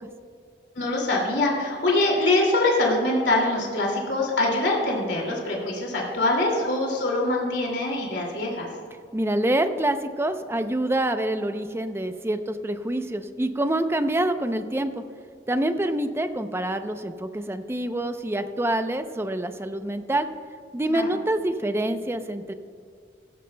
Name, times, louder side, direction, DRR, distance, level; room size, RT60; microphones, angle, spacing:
voice 1, 0.8-8.7 20.9-21.0, left 2 dB, 80° left, -2 dB, 2.4 m, -24 dB
voice 2, 9.1-15.0 15.5-20.3 20.7-22.5, right 1 dB, 15° right, 9 dB, 0.6 m, -26 dB
16.0 x 14.5 x 2.2 m, 2.3 s
head